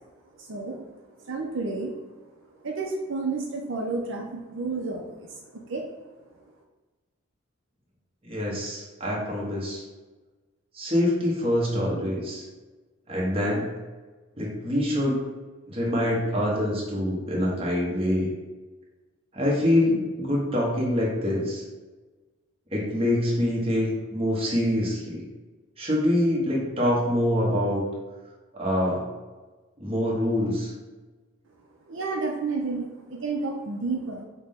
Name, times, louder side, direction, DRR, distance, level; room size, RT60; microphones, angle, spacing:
voice 1, 0.4-0.8 1.2-1.9 2.6-5.8 31.9-34.2, right 3 dB, 70° right, 0 dB, 0.5 m, -31 dB
voice 2, 8.2-9.8 10.7-12.5 13.1-13.7 14.4-15.2 15.7-18.3 19.3-21.6 22.7-25.2 25.8-27.8 28.5-29.1 29.8-30.7, left 1 dB, 25° right, -4 dB, 1.0 m, -25 dB
5.8 x 2.2 x 3.6 m, 1.3 s
head